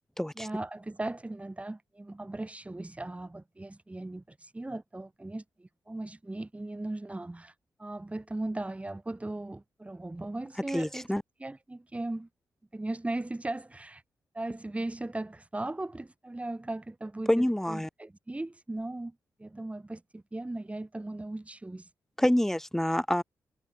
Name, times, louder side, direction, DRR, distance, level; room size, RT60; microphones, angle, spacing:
voice 1, 0.4-11.1 11.4-12.3 12.7-14.0 14.3-19.1 19.4-21.9, right 2 dB, 20° right, 6.0 m, -38 dB
voice 2, 10.7-11.2 17.3-17.9 22.2-23.2, equal, 5° left, 1.3 m, -26 dB
cardioid pair, 70°, 7 cm